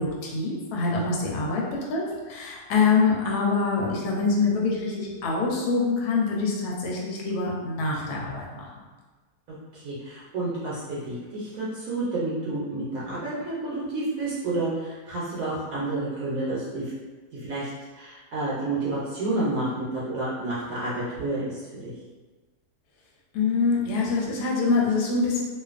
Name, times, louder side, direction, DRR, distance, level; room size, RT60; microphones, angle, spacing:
voice 1, 0.0-8.7 23.3-25.4, left 4 dB, 90° left, -3 dB, 1.1 m, -25 dB
voice 2, 9.7-16.9 17.3-17.7 18.0-21.9, right 2 dB, 70° right, -8 dB, 1.0 m, -30 dB
2.5 x 2.3 x 2.4 m, 1.3 s
omnidirectional pair, 1.6 m